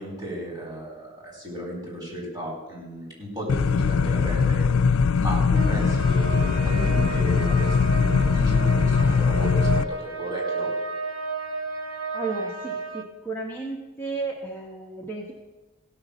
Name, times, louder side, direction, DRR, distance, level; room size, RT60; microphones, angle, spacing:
voice 1, 0.0-4.7 5.2-10.7, equal, 20° right, -3 dB, 4.4 m, -34 dB
sound 1, 3.5-9.8, left 5 dB, 85° left, 0.4 m, -21 dB
sound 2, 5.5-13.0, right 4 dB, 75° right, 1.1 m, -33 dB
voice 2, 12.1-15.3, right 3 dB, 10° left, -4 dB, 1.3 m, -33 dB
16.0 x 6.6 x 7.1 m, 1.1 s
head